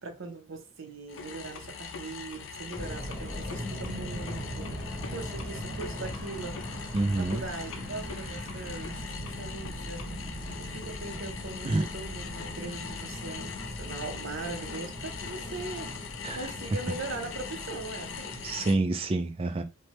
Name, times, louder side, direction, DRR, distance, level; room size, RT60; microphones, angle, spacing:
voice 1, 0.0-4.7 5.1-6.7 7.2-10.2 10.6-15.9 16.3-18.4, right 3 dB, 65° right, 0.7 m, -40 dB
sound 1, 1.1-18.7, left 6 dB, 65° left, 0.4 m, -42 dB
sound 2, 2.7-18.8, equal, 10° left, 1.0 m, -39 dB
voice 2, 6.9-7.4 11.6-11.9 16.2-16.4 18.4-19.6, right 2 dB, 25° right, 0.3 m, -27 dB
3.3 x 2.1 x 2.9 m
head